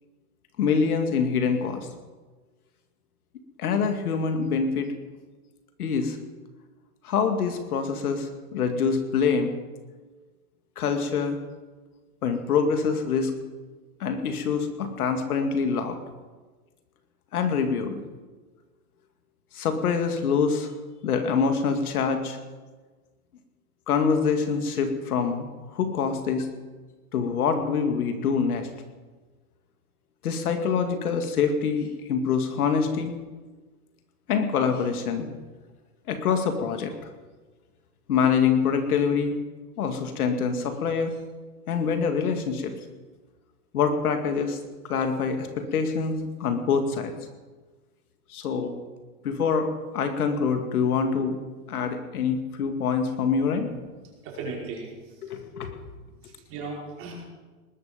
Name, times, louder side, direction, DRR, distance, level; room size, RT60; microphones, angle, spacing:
voice 1, 0.6-1.9 3.6-5.0 5.8-6.2 7.0-9.5 10.8-11.4 12.2-13.3 14.0-16.0 17.3-18.0 19.5-20.7 21.0-22.4 23.9-26.5 27.1-28.7 30.2-33.1 34.3-35.3 36.1-36.9 38.1-39.4 39.8-41.1 41.7-42.7 43.7-44.6 44.9-47.1 48.3-48.7 49.2-51.4 51.7-53.7 55.2-55.7, left 6 dB, 75° left, 6 dB, 2.4 m, -25 dB
voice 2, 54.2-54.9 56.2-57.1, right 3 dB, 30° right, -2 dB, 5.2 m, -36 dB
19.5 x 13.5 x 5.3 m, 1.3 s
hypercardioid pair, 150°, 44 cm